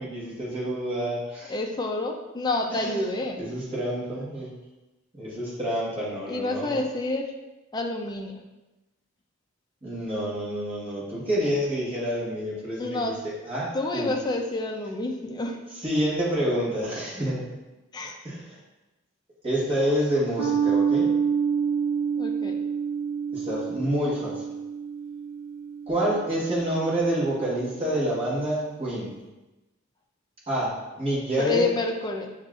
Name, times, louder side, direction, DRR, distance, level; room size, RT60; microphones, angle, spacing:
voice 1, 0.0-1.5 2.7-4.5 5.1-6.8 9.8-14.1 15.8-17.5 18.2-18.6 19.4-21.1 23.3-24.4 25.9-29.1 30.5-31.7, right 1 dB, 25° right, -7 dB, 1.2 m, -28 dB
voice 2, 1.5-3.4 6.3-7.3 7.7-8.3 12.8-13.1 13.7-15.6 17.9-18.2 22.2-22.6 31.4-32.3, left 2 dB, 20° left, 2 dB, 0.3 m, -28 dB
sound 1, 20.4-27.1, right 6 dB, 65° right, 0.6 m, -28 dB
6.4 x 2.4 x 2.4 m, 1.1 s
head